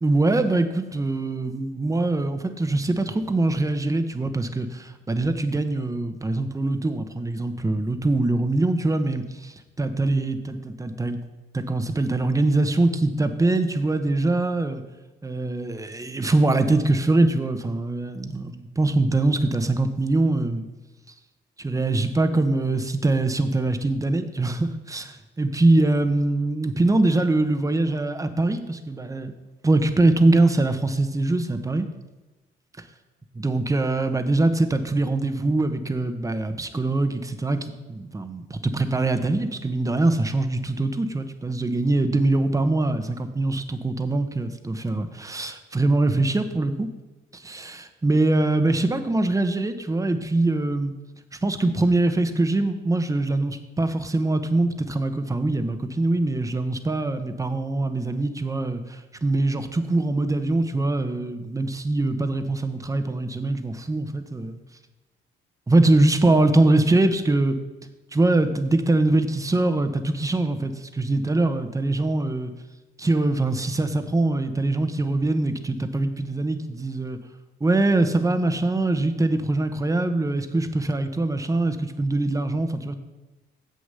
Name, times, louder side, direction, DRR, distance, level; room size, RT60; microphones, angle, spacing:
voice 1, 0.0-11.2 11.5-14.8 15.2-20.7 21.6-29.3 29.6-31.9 33.4-37.6 37.9-46.9 47.3-50.9 51.4-64.6 65.7-67.6 68.1-72.5 73.0-77.2 77.6-82.9, right 2 dB, 15° right, 9 dB, 0.9 m, -23 dB
7.8 x 6.5 x 6.7 m, 1.1 s
cardioid pair, 90°, 20 cm